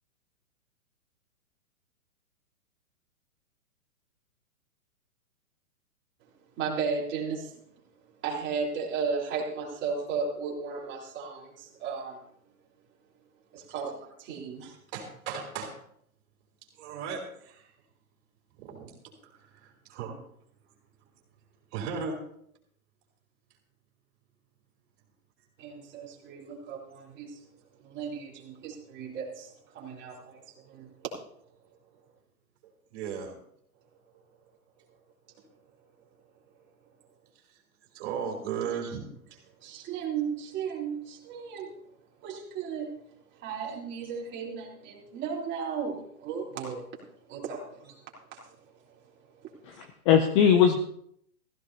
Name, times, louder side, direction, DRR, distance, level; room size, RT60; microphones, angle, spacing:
voice 1, 6.6-7.6 8.2-12.2 13.5-14.7 25.6-27.4 27.8-30.9 39.6-41.7 42.2-42.9 43.3-46.9 47.3-48.0 48.3-48.5 49.4-49.5, right 5 dB, 25° right, -3 dB, 3.7 m, -35 dB
voice 2, 14.9-15.7 16.8-17.7 18.6-18.9 19.6-20.2 21.7-22.2 32.9-33.3 37.9-39.4, right 6 dB, 40° right, -2 dB, 4.1 m, -35 dB
voice 3, 49.7-50.8, left 8 dB, 20° left, 8 dB, 0.5 m, -21 dB
16.0 x 15.0 x 2.8 m, 0.70 s
hypercardioid pair, 130°, 44 cm